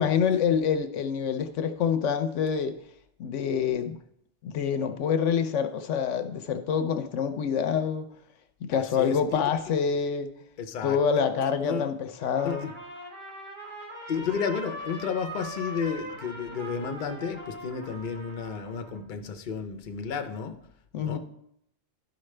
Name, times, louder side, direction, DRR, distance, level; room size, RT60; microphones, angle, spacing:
voice 1, 0.0-2.8 3.2-4.0 4.4-8.1 8.7-10.3 10.8-12.7 20.9-21.2, left 7 dB, 75° left, 8 dB, 0.9 m, -26 dB
voice 2, 8.7-9.4 10.6-11.0 11.6-11.9 12.4-12.7 14.1-20.6 21.0-21.2, left 6 dB, 50° left, 6 dB, 0.7 m, -32 dB
Trumpet, 12.2-19.0, right 1 dB, 40° right, 1.7 m, -41 dB
12.0 x 5.0 x 3.2 m, 0.74 s
omnidirectional pair, 1.3 m